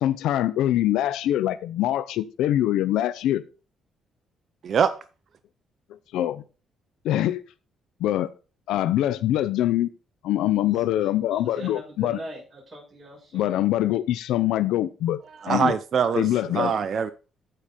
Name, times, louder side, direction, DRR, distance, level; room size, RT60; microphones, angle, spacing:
voice 1, 0.0-3.4 5.9-6.4 7.0-7.4 8.0-8.3 8.7-9.9 10.2-12.2 13.3-15.2 15.5-15.8 16.2-16.7, left 13 dB, 85° left, 0.5 m, -24 dB
voice 2, 4.6-4.9 15.4-16.3 16.5-17.1, right 7 dB, 55° right, 0.6 m, -23 dB
voice 3, 10.6-13.6, right 1 dB, 30° right, 5.9 m, -42 dB
13.5 x 5.0 x 4.2 m
cardioid pair, 90°, 0 cm